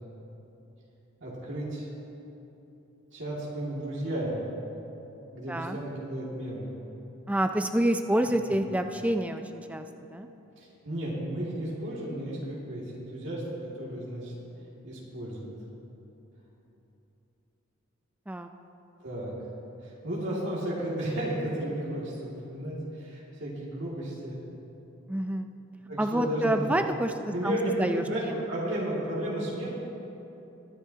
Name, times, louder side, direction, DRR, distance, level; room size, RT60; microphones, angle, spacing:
voice 1, 1.2-1.9 3.1-4.5 5.3-6.7 10.6-14.3 14.8-15.5 19.0-19.3 19.8-24.4 25.9-26.7 27.3-29.7, right 1 dB, 60° right, -6 dB, 2.2 m, -33 dB
voice 2, 7.3-9.9 10.1-10.3 18.3-18.5 25.1-25.5 26.0-28.4, right 1 dB, 5° right, 7 dB, 0.3 m, -28 dB
22.0 x 10.5 x 2.8 m, 3.0 s
head